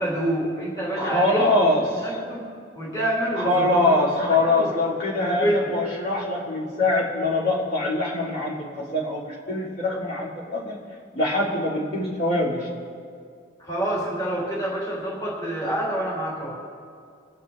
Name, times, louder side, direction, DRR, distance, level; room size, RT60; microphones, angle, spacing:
voice 1, 0.0-2.5 2.8-4.0 4.3-4.7 5.2-5.7 13.6-16.5, right 1 dB, 20° left, -5 dB, 2.9 m, -27 dB
voice 2, 1.0-2.0 3.4-10.8 11.1-12.7, left 2 dB, 50° left, -8 dB, 2.8 m, -23 dB
24.0 x 10.0 x 2.6 m, 2.3 s
head